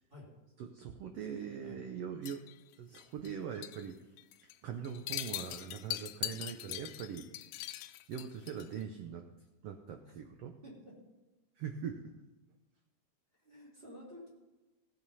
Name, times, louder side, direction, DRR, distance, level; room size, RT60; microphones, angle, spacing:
voice 1, 0.6-2.5 2.8-4.1 4.4-7.3 8.1-9.2 9.6-10.6 11.6-12.2, right 7 dB, 90° right, 6 dB, 1.3 m, -42 dB
sound 1, 2.2-3.3 3.6-3.9 4.2-4.5 4.8-8.8, left 15 dB, 80° left, 1.7 m, -42 dB
voice 2, 10.6-11.0 13.4-14.3, left 1 dB, 15° right, -5 dB, 3.1 m, -52 dB
15.5 x 7.2 x 5.5 m, 1.1 s
omnidirectional pair, 3.7 m